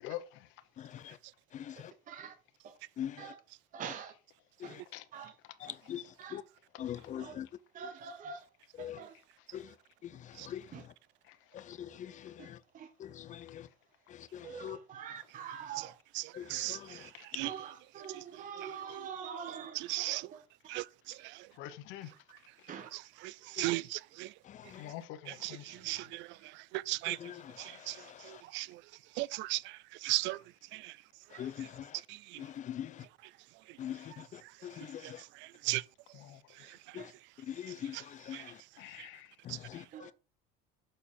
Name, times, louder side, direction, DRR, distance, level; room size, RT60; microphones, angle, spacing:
voice 1, 0.8-1.2 1.5-1.9 3.0-3.3 4.6-4.8 5.6-6.0 6.3-6.4 6.8-7.5 8.8-9.0 9.5-9.7 10.4-10.6 11.5-12.6 13.0-13.7 14.2-14.8 16.3-17.0 17.4-17.5 23.6-23.7 24.5-24.9 27.1-28.4 31.4-32.0 32.4-33.0 33.8-35.2 36.9-37.1 37.5-38.5 39.4-40.1, left 10 dB, 35° left, 0.6 m, -43 dB
voice 2, 3.7-4.1 4.6-4.7 5.1-5.3 6.2-6.4 7.2-7.3 7.7-8.4 9.0-9.1 10.7-10.8 12.7-12.9 14.4-15.9 17.4-19.8 22.7-22.9 37.0-37.1 39.9-40.1, right 7 dB, 40° right, 1.0 m, -43 dB
voice 3, 19.9-20.2 20.7-20.8 23.6-23.8 25.9-26.0 26.9-27.2 28.5-28.6 29.2-29.6 30.0-30.4 35.7-35.8, right 19 dB, 60° right, 0.4 m, -32 dB
voice 4, 21.6-22.1 24.8-25.6 36.1-36.4 38.8-39.3 39.7-39.8, left 14 dB, 70° left, 1.0 m, -44 dB
6.5 x 4.5 x 5.4 m
cardioid pair, 120°, 21 cm